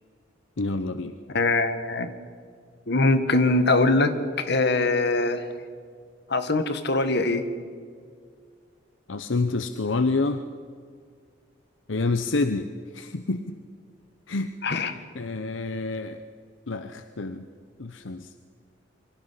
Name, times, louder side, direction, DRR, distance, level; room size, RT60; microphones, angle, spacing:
voice 1, 0.6-1.2 9.1-10.4 11.9-13.6 14.3-16.2 16.7-17.4 17.8-18.3, left 3 dB, 80° left, 9 dB, 0.9 m, -28 dB
voice 2, 1.3-2.1 2.9-5.5 6.3-7.4 14.6-14.9, left 2 dB, 60° left, 9 dB, 1.7 m, -22 dB
27.5 x 24.5 x 5.8 m, 2.1 s
head